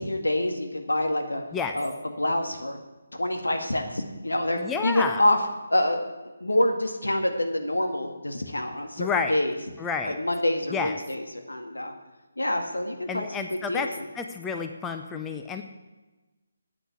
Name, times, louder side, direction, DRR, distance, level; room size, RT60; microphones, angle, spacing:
voice 1, 0.0-1.4 1.7-1.9 2.2-2.8 3.2-6.0 6.2-9.6 10.0-11.9 12.4-14.1, left 1 dB, 75° left, 4 dB, 2.0 m, -27 dB
voice 2, 4.6-5.2 9.0-9.3 9.8-10.2 10.7-10.9 13.1-13.9 14.2-15.6, left 5 dB, 10° left, 5 dB, 0.6 m, -30 dB
8.7 x 8.1 x 9.3 m, 1.1 s
figure-of-eight pair, 150°, 0 cm